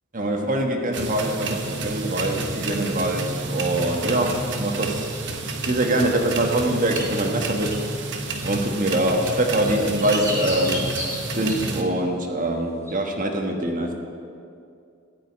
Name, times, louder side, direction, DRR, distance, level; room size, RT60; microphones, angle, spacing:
voice 1, 0.1-5.1 5.7-7.8 8.4-10.9 11.3-13.9, right 1 dB, 40° right, 3 dB, 1.4 m, -24 dB
sound 1, 0.9-11.8, right 3 dB, 55° right, 1.2 m, -30 dB
sound 2, 6.9-7.8 8.4-8.5 9.5-11.8 12.9-13.0, equal, 15° right, 2.7 m, -33 dB
15.0 x 5.4 x 9.7 m, 2.4 s
head